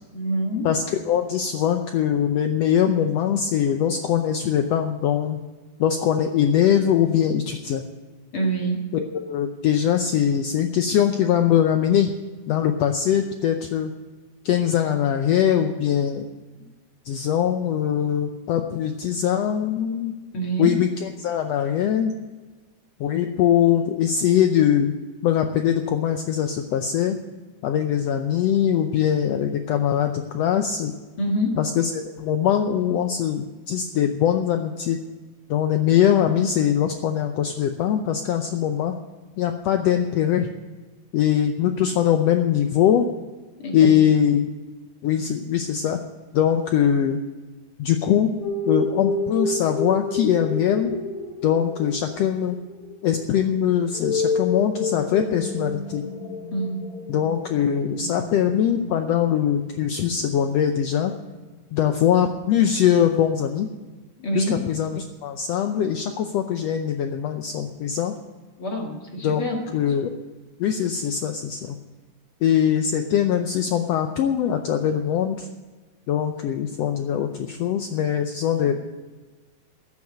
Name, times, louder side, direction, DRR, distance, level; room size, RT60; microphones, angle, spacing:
voice 1, 0.1-0.7 8.3-8.8 20.3-20.7 31.2-31.6 43.6-43.9 56.5-56.9 64.2-64.6 68.6-69.6, right 1 dB, 50° left, 0 dB, 2.4 m, -26 dB
voice 2, 0.6-5.4 5.8-7.8 8.9-12.1 12.5-13.9 14.4-16.3 17.0-20.1 20.6-22.1 23.0-24.9 25.2-27.2 27.6-30.9 31.6-35.0 35.5-38.9 39.4-40.5 41.1-43.1 43.7-44.5 45.0-46.0 46.3-47.2 47.8-48.3 48.6-50.9 51.4-52.6 53.0-56.1 57.1-61.1 61.7-63.7 64.3-68.1 69.2-70.1 70.6-71.8 72.4-75.5 76.1-78.7, left 9 dB, 75° left, 6 dB, 1.6 m, -22 dB
sound 1, 48.4-61.5, left 3 dB, 90° left, 3.8 m, -31 dB
14.0 x 7.3 x 9.5 m, 1.3 s
omnidirectional pair, 3.5 m